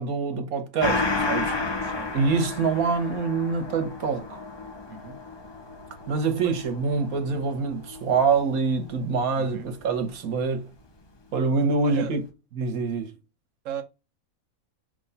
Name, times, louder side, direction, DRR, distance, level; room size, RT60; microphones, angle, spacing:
voice 1, 0.0-1.6 2.1-4.4 6.1-10.6 11.3-12.2 12.5-13.1, right 4 dB, 85° right, 1.5 m, -25 dB
Gong, 0.8-9.8 10.1-10.2, left 3 dB, 30° left, 0.5 m, -33 dB
voice 2, 4.9-5.2 6.4-6.7 9.3-9.7 11.8-12.2 13.6-13.8, right 8 dB, 70° right, 1.1 m, -37 dB
6.2 x 3.1 x 5.4 m
omnidirectional pair, 1.5 m